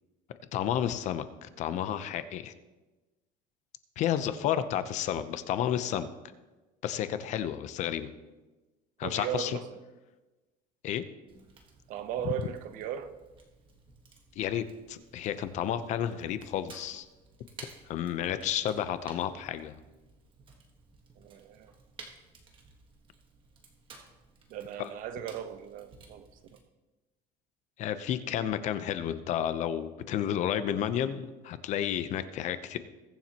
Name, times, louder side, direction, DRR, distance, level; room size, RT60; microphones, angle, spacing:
voice 1, 0.5-2.5 4.0-6.1 6.8-8.1 9.0-9.6 10.8-11.0 14.4-17.1 17.9-19.7 24.8-24.9 27.8-32.8, left 10 dB, 50° left, 12 dB, 0.7 m, -31 dB
voice 2, 9.0-9.8 11.9-13.1 21.2-21.7 24.5-26.6, right 10 dB, 60° right, 10 dB, 0.9 m, -37 dB
Fire, 11.3-26.6, right 4 dB, 30° right, 1.5 m, -55 dB
21.0 x 7.2 x 2.9 m, 1.2 s
cardioid pair, 155°, 16 cm